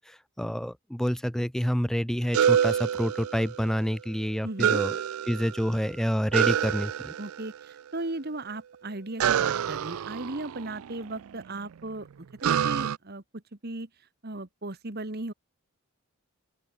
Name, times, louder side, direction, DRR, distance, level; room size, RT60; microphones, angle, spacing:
voice 1, 0.1-5.0 5.3-7.1, equal, ahead, 0.6 m, -28 dB
sound 1, 2.3-3.8 4.6-5.8 6.3-7.6 9.2-11.3 12.4-13.0, right 9 dB, 80° right, 0.4 m, -27 dB
voice 2, 4.4-4.8 7.2-12.1 12.4-13.9 14.2-15.3, right 2 dB, 45° right, 1.7 m, -36 dB
open air
head